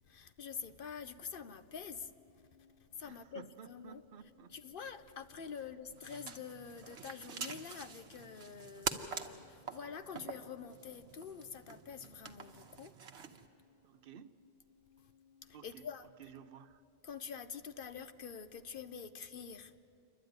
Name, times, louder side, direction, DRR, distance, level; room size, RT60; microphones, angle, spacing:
voice 1, 0.0-2.1 2.8-4.0 4.5-12.9 15.0-15.1 15.4-16.1 17.0-19.7, left 6 dB, 55° left, 0.9 m, -47 dB
sound 1, 1.6-16.9, left 5 dB, 35° left, 3.9 m, -69 dB
voice 2, 3.0-4.5 13.8-14.4 15.5-15.9 16.2-16.8, right 7 dB, 60° right, 0.8 m, -54 dB
sound 2, 5.9-13.5, right 6 dB, 85° right, 1.3 m, -45 dB
28.0 x 12.0 x 9.4 m
omnidirectional pair, 1.1 m